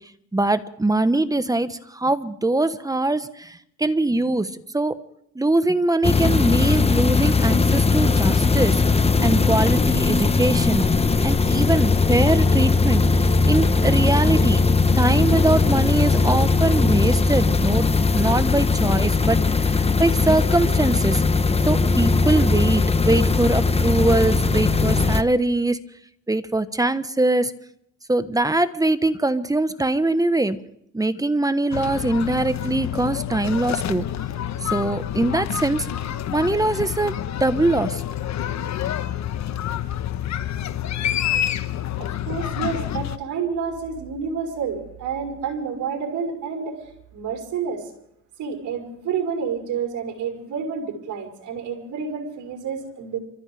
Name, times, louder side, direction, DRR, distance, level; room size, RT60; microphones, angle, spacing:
voice 1, 0.3-5.0 5.3-10.9 11.2-21.2 21.7-25.8 26.3-27.5 28.1-30.6 30.9-34.0 34.6-35.9 36.3-38.0, right 2 dB, 10° right, 12 dB, 1.2 m, -22 dB
sound 1, 6.0-25.2, left 4 dB, 20° left, 1.1 m, -19 dB
sound 2, 31.7-43.2, left 11 dB, 65° left, 1.2 m, -28 dB
voice 2, 42.0-46.8 47.1-47.8 48.4-53.2, right 6 dB, 80° right, 0 dB, 4.7 m, -29 dB
29.0 x 14.5 x 3.4 m, 0.75 s
cardioid pair, 90°, 30 cm